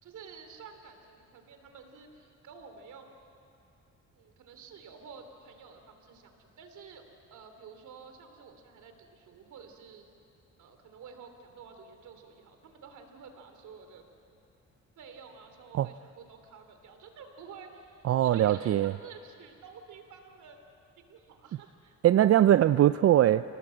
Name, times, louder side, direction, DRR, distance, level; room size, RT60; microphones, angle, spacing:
voice 1, 0.0-3.2 4.1-10.0 10.6-14.0 15.0-20.6 21.0-21.9, right 6 dB, 75° right, 6 dB, 3.2 m, -50 dB
voice 2, 18.0-18.9 22.0-23.4, right 12 dB, 50° right, 14 dB, 0.5 m, -21 dB
28.5 x 19.0 x 7.7 m, 2.6 s
cardioid pair, 90°, 30 cm